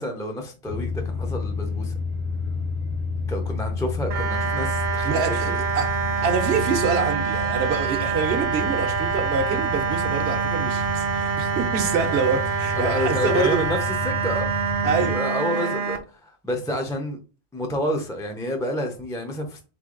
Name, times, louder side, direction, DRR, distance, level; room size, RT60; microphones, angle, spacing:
voice 1, 0.0-1.9 3.3-5.3 12.7-13.8 14.0-14.5 14.8-17.2 17.5-19.6, equal, 5° left, 0.4 m, -29 dB
sound 1, 0.7-15.1, left 3 dB, 40° left, 0.7 m, -30 dB
sound 2, 4.1-16.0, right 6 dB, 50° right, 0.4 m, -26 dB
voice 2, 5.0-13.6 14.8-15.2 15.5-15.7, right 5 dB, 70° right, 1.0 m, -26 dB
3.7 x 3.3 x 3.7 m
omnidirectional pair, 1.1 m